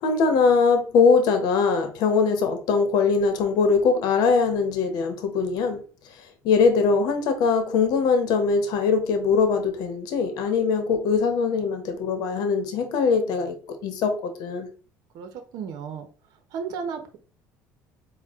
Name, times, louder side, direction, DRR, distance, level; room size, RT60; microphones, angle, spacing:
voice 1, 0.0-5.8 6.2-13.6 13.8-14.7, left 5 dB, 70° left, 7 dB, 0.9 m, -22 dB
voice 2, 15.1-16.1 16.5-17.2, right 6 dB, 70° right, 6 dB, 0.8 m, -34 dB
4.2 x 2.2 x 3.5 m, 0.39 s
supercardioid pair, 100°, 7 cm